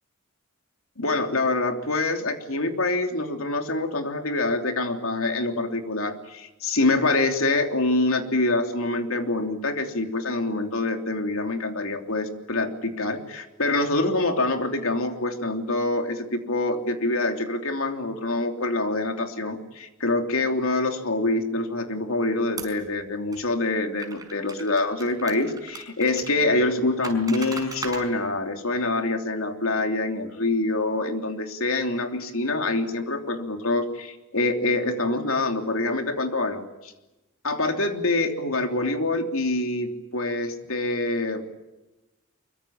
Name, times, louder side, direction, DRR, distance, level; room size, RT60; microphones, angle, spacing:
voice 1, 1.0-36.9 37.4-41.4, left 2 dB, 75° left, 5 dB, 3.1 m, -25 dB
sound 1, 22.6-22.9 23.3-23.4 24.0-26.3 27.0-28.0, right 4 dB, 15° right, 4.9 m, -37 dB
24.5 x 23.5 x 8.9 m, 1.0 s
head